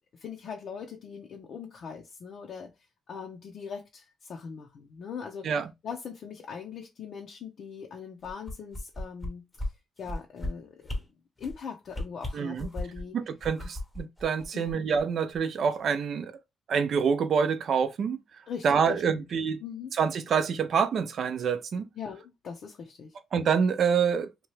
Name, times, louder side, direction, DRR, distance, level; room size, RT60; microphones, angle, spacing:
voice 1, 0.2-2.7 3.1-5.5 5.8-9.5 10.0-11.0 11.4-13.2 14.5-14.7 18.5-19.2 19.6-19.9 22.0-23.1, left 6 dB, 60° left, 0.6 m, -40 dB
sound 1, 8.2-9.3 9.6-9.7 10.0-10.5 10.8-11.0 11.4-11.6 11.9-13.0 13.4-15.0 15.3-15.4, left 1 dB, 10° left, 0.8 m, -35 dB
voice 2, 12.3-12.7 13.1-16.4 16.7-18.2 18.6-19.6 19.9-21.9 23.3-24.3, right 6 dB, 60° right, 0.4 m, -26 dB
2.9 x 2.3 x 3.1 m
cardioid pair, 90°, 0 cm